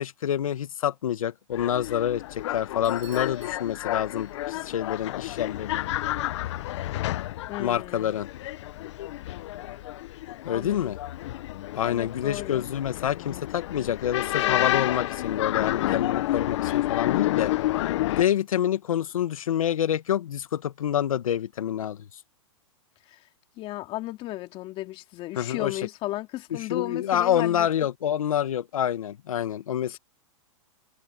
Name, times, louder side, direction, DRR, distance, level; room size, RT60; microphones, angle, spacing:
voice 1, 0.0-5.9 7.6-8.3 10.4-11.0 11.7-17.5 18.1-22.0 25.3-25.7 26.5-30.0, left 10 dB, 85° left, 1.5 m, -27 dB
sound 1, 1.5-18.2, left 15 dB, 60° left, 0.8 m, -30 dB
Bell / Doorbell, 2.8-4.7, right 15 dB, 60° right, 5.4 m, -53 dB
voice 2, 7.5-8.1 10.5-10.9 11.8-12.6 14.4-14.8 23.1-23.2 23.6-27.7 29.9-30.0, left 17 dB, 30° left, 2.7 m, -35 dB
hypercardioid pair, 145°, 17 cm